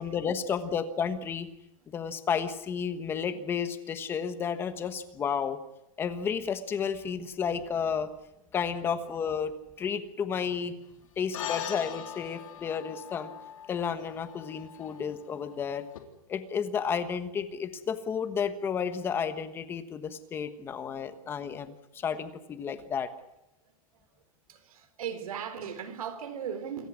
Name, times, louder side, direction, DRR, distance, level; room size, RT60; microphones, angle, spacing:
voice 1, 0.0-1.5 1.9-5.6 6.0-8.1 8.5-10.7 11.2-13.3 13.7-15.8 16.3-23.1, left 7 dB, 10° left, 11 dB, 1.3 m, -32 dB
sound 1, 11.3-16.0, left 10 dB, 65° left, 3.5 m, -41 dB
voice 2, 24.5-26.9, right 8 dB, 80° right, 11 dB, 4.3 m, -37 dB
28.0 x 15.0 x 9.7 m, 0.87 s
supercardioid pair, 175°, 18 cm